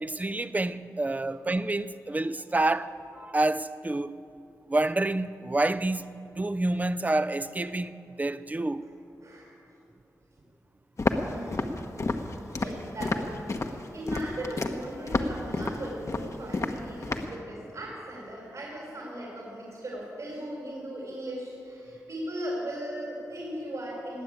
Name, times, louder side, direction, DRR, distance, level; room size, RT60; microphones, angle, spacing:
voice 1, 0.0-4.2 4.7-8.9 11.5-11.6, right 2 dB, 25° right, 0.6 m, -28 dB
voice 2, 9.2-9.5 11.0-11.7 12.5-24.2, equal, 65° right, 4.1 m, -38 dB
Walk footsteps, 11.0-17.4, left 2 dB, 50° left, 1.1 m, -30 dB
20.0 x 7.6 x 8.6 m
cardioid pair, 60°, 7 cm